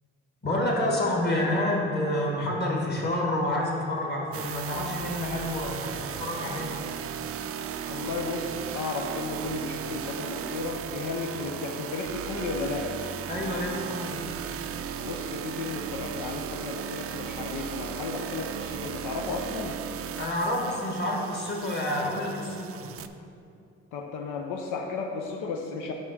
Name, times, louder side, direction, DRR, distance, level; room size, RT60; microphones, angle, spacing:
voice 1, 0.4-6.7 13.3-14.2 20.2-22.8, left 1 dB, 35° left, -1 dB, 1.6 m, -28 dB
sound 1, 4.3-23.1, right 8 dB, 50° right, 0.4 m, -36 dB
voice 2, 7.9-13.0 15.0-19.8 23.9-25.9, left 4 dB, 85° left, 2 dB, 0.6 m, -34 dB
5.4 x 4.9 x 6.4 m, 2.6 s
cardioid pair, 90°, 30 cm